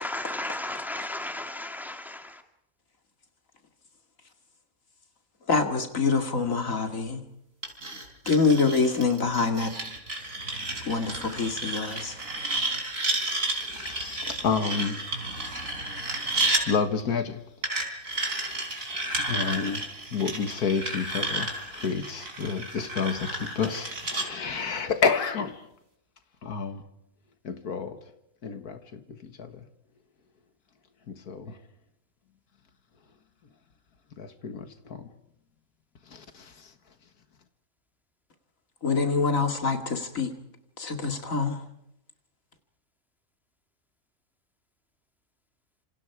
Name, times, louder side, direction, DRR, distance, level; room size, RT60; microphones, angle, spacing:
voice 1, 0.0-2.4, left 1 dB, ahead, 2.2 m, -34 dB
voice 2, 5.5-7.2 8.3-9.7 10.8-12.3 38.8-40.3 40.8-41.6, left 4 dB, 60° left, 2.6 m, -25 dB
sound 1, 7.6-16.6 17.6-24.3, right 2 dB, 60° right, 4.2 m, -32 dB
voice 3, 13.6-15.1 16.7-17.4 18.3-25.7 26.4-26.8 27.4-28.0 28.4-29.6 31.1-31.6 34.2-35.1 36.1-36.7, left 5 dB, 80° left, 2.0 m, -30 dB
27.5 x 27.0 x 4.8 m
omnidirectional pair, 1.6 m